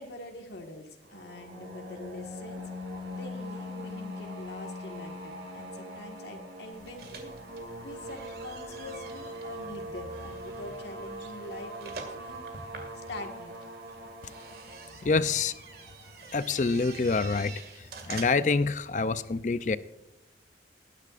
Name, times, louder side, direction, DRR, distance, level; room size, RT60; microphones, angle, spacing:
voice 1, 0.0-2.6 3.1-7.3 7.8-12.5 12.9-13.6, left 2 dB, 75° left, 2 dB, 1.7 m, -44 dB
sound 1, 1.0-16.9, equal, 85° right, 3.4 m, -42 dB
sound 2, 6.7-18.6, right 4 dB, 55° right, 2.1 m, -47 dB
voice 2, 15.0-15.5 16.3-17.5 18.1-19.8, left 4 dB, 45° left, 14 dB, 0.5 m, -26 dB
20.0 x 10.0 x 2.5 m, 0.92 s
head